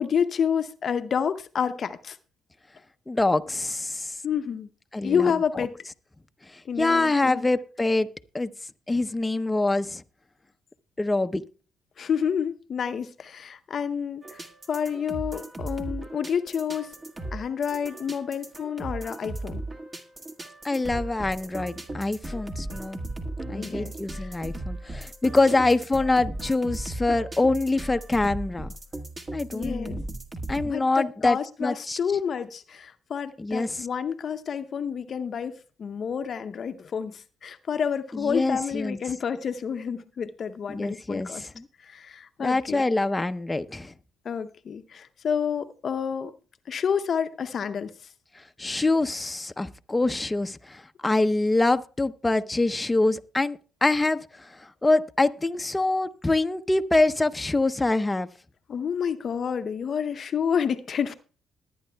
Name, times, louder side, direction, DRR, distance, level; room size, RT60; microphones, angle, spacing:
voice 1, 0.0-2.2 4.2-4.7 5.0-5.7 6.7-7.4 12.0-14.4 14.7-16.9 17.3-19.6 23.5-24.3 29.5-30.0 30.6-41.5 41.8-42.8 44.2-46.3 46.7-47.9 58.7-61.1, left 7 dB, 55° left, 0.7 m, -29 dB
voice 2, 3.1-4.2 4.9-5.7 6.5-8.1 8.3-8.5 8.9-10.0 11.0-11.4 20.6-23.0 23.5-28.7 29.3-30.0 30.5-32.0 33.4-33.9 38.1-39.0 40.7-41.7 42.4-43.9 48.3-58.3, left 2 dB, 20° left, 0.7 m, -25 dB
sound 1, 14.2-30.7, right 2 dB, 30° right, 1.7 m, -36 dB
20.5 x 9.4 x 2.3 m
supercardioid pair, 60°, 0 cm